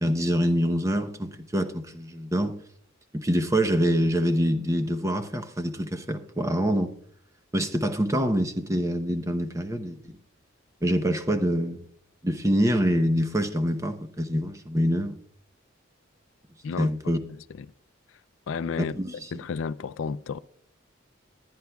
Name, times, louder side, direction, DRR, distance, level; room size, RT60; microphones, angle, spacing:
voice 1, 0.0-2.5 3.1-6.9 7.5-10.2 10.8-11.9 12.2-15.2 16.8-17.2 18.8-19.1, equal, 15° right, 0.8 m, -25 dB
voice 2, 16.6-17.7 18.5-18.9 19.3-20.4, left 5 dB, 75° left, 0.4 m, -32 dB
21.5 x 9.4 x 2.3 m
head